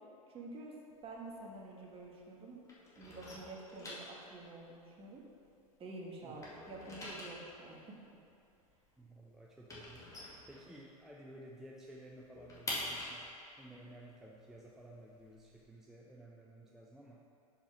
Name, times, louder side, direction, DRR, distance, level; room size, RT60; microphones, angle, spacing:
voice 1, 0.3-0.8 1.0-2.6 3.0-5.2 5.8-8.0, right 2 dB, 30° right, -2 dB, 1.6 m, -48 dB
sound 1, 0.9-2.4 2.6-5.9 6.2-11.2 11.5-11.6 11.9-15.6, left 1 dB, 15° left, 2.1 m, -46 dB
voice 2, 9.0-13.2 13.5-17.2, right 1 dB, ahead, -4 dB, 0.7 m, -54 dB
6.7 x 5.6 x 5.9 m, 2.5 s
hypercardioid pair, 105°, 19 cm